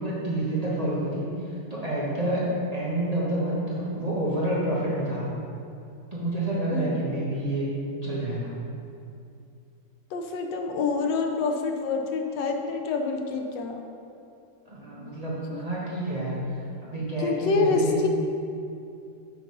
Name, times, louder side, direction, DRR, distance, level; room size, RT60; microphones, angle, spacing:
voice 1, 0.0-2.5 2.7-5.3 6.1-7.7 8.0-8.6 14.7-18.0, right 1 dB, 25° right, -8 dB, 1.1 m, -29 dB
voice 2, 10.1-13.8 15.5-15.6 17.2-18.1, left 4 dB, 85° left, 3 dB, 1.3 m, -27 dB
6.3 x 3.9 x 5.3 m, 2.6 s
omnidirectional pair, 1.9 m